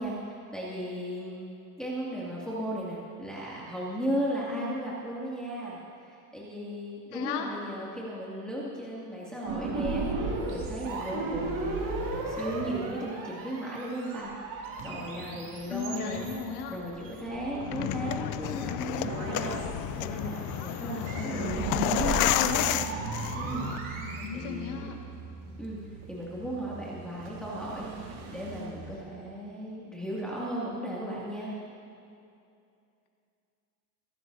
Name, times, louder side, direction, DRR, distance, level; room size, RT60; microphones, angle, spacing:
voice 1, 0.0-1.5 1.8-5.8 6.1-16.3 16.7-22.3 23.3-23.7 24.3-24.9 25.6-25.8 26.1-31.5, right 1 dB, ahead, -7 dB, 2.4 m, -36 dB
voice 2, 7.1-7.5 15.7-16.8 21.3-22.7 24.2-25.0, left 7 dB, 70° left, 1 dB, 2.1 m, -35 dB
sound 1, 9.5-24.3, right 3 dB, 40° right, 2.6 m, -35 dB
sound 2, 14.8-29.0, right 4 dB, 70° right, 2.0 m, -44 dB
sound 3, 17.6-23.8, left 14 dB, 40° left, 0.5 m, -31 dB
23.0 x 12.0 x 2.8 m, 2.5 s
supercardioid pair, 110°, 47 cm